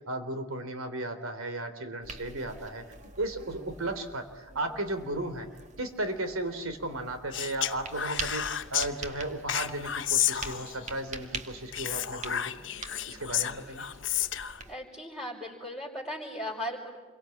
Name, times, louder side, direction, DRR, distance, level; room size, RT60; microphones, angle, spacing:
voice 1, 0.1-2.8 3.2-5.5 5.8-12.5 13.1-13.9, right 2 dB, 90° right, 8 dB, 3.6 m, -35 dB
sound 1, 2.0-14.8, right 3 dB, 35° right, 1.9 m, -44 dB
Speech, 7.3-8.9 9.5-10.9 11.7-14.6, left 11 dB, 65° left, 1.0 m, -31 dB
voice 2, 14.6-17.0, equal, 5° right, -7 dB, 5.2 m, -37 dB
28.5 x 23.5 x 8.7 m, 1.3 s
head